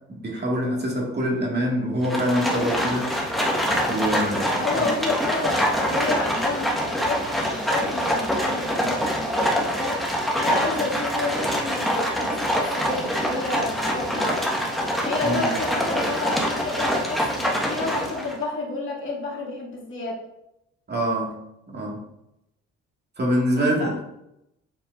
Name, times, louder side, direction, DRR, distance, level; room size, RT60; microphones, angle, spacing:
voice 1, 0.1-3.1 3.8-4.9 15.2-15.5 20.9-21.4 21.7-22.0 23.2-24.0, equal, 35° right, -2 dB, 2.0 m, -25 dB
Livestock farm animals working animals, 2.0-18.4, equal, ahead, 1.5 m, -25 dB
voice 2, 4.6-10.0 10.3-14.5 15.0-20.2 23.6-23.9, left 3 dB, 40° left, -4 dB, 2.3 m, -30 dB
8.2 x 4.4 x 2.6 m, 0.83 s
cardioid pair, 90°, 30 cm